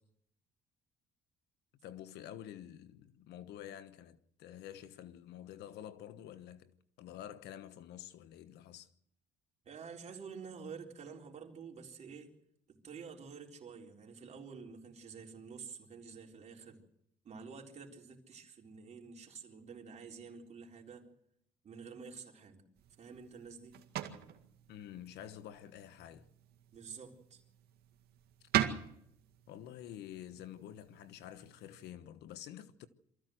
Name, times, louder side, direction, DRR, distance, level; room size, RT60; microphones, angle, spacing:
voice 1, 1.8-8.9 24.7-26.3 28.4-28.5 29.5-32.9, left 11 dB, 80° left, 1.2 m, -49 dB
voice 2, 9.6-12.3 12.7-16.8 17.2-21.1 21.6-22.6 23.0-23.8 26.7-27.4, right 5 dB, 40° right, 3.9 m, -49 dB
sound 1, 22.7-31.9, right 11 dB, 70° right, 2.0 m, -42 dB
24.0 x 14.5 x 7.9 m
cardioid pair, 110°, 17 cm